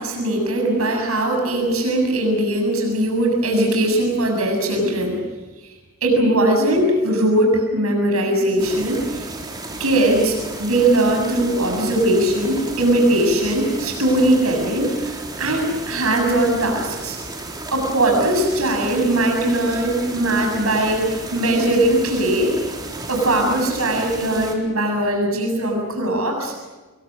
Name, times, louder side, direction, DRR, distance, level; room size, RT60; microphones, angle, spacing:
voice 1, 0.0-5.2 5.6-5.7 6.0-9.3 9.8-17.2 17.7-22.6 23.1-26.5, right 1 dB, 85° right, 2 dB, 7.1 m, -20 dB
sound 1, 8.6-24.5, right 2 dB, 20° right, 4.0 m, -33 dB
26.0 x 23.5 x 6.5 m, 1.2 s
head